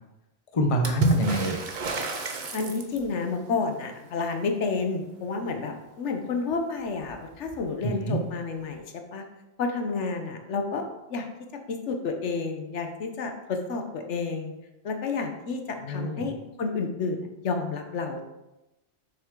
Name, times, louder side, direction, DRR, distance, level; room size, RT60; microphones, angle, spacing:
voice 1, 0.5-1.6 7.8-8.2 15.8-16.3, right 1 dB, 30° left, 3 dB, 0.9 m, -26 dB
Water / Splash splatter, 0.8-3.2 6.5-6.6 6.9-7.6 8.7-8.8, right 2 dB, 45° right, 0.8 m, -31 dB
voice 2, 2.5-8.8 9.1-9.2 9.6-11.3 11.7-14.5 14.8-18.2, left 4 dB, 75° left, 5 dB, 1.1 m, -30 dB
7.0 x 6.3 x 3.7 m, 0.97 s
omnidirectional pair, 1.2 m